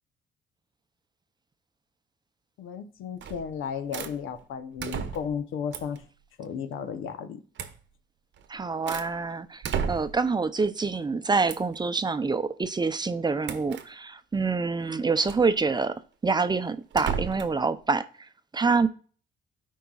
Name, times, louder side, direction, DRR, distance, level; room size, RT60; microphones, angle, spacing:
voice 1, 2.6-6.0 6.4-7.4, left 7 dB, 85° left, 0.9 m, -34 dB
sound 1, 3.2-3.5 3.9-4.2 4.8-5.4 5.7-6.0 7.6-7.8 8.4-9.1 9.6-10.3 11.5-11.8 13.4-13.9 15.2-15.5 16.9-17.6, right 7 dB, 65° right, 0.9 m, -33 dB
voice 2, 8.5-15.9 16.2-18.0 18.5-18.9, right 4 dB, 20° right, 0.6 m, -26 dB
12.5 x 4.6 x 2.4 m
cardioid pair, 90°, 20 cm